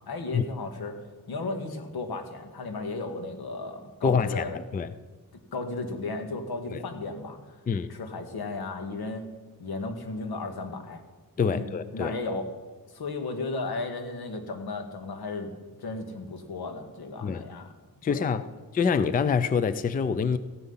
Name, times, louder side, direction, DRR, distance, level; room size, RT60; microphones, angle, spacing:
voice 1, 0.1-4.6 5.5-7.6 7.9-9.2 9.6-11.0 11.5-12.5 12.9-15.5 15.8-17.7 18.0-18.3, left 3 dB, 85° left, 6 dB, 2.0 m, -35 dB
voice 2, 4.0-4.9 6.7-6.8 7.7-7.9 11.4-12.1 17.2-17.4 18.0-18.4 18.7-20.4, left 6 dB, 25° left, 14 dB, 0.4 m, -26 dB
15.0 x 11.5 x 5.7 m, 1.3 s
wide cardioid pair, 155°, 36 cm